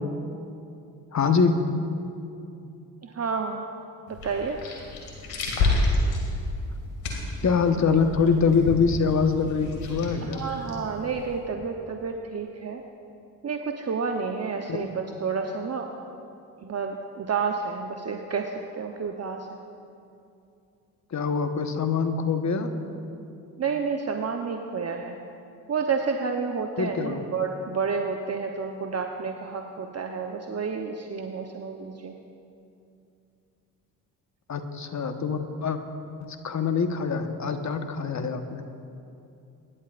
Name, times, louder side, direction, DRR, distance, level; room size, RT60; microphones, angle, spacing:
voice 1, 1.1-1.6 7.4-10.5 14.7-14.9 21.1-22.7 26.8-27.2 34.5-35.8 36.2-38.7, left 5 dB, 40° left, 7 dB, 1.3 m, -24 dB
voice 2, 3.0-3.7 4.1-4.6 10.3-12.8 13.4-15.9 16.6-19.6 23.6-25.2 25.7-32.1, right 5 dB, 35° right, 3 dB, 1.0 m, -30 dB
sound 1, 4.1-11.4, left 2 dB, 80° left, 2.5 m, -30 dB
25.0 x 11.5 x 2.6 m, 2.6 s
hypercardioid pair, 50°, 43 cm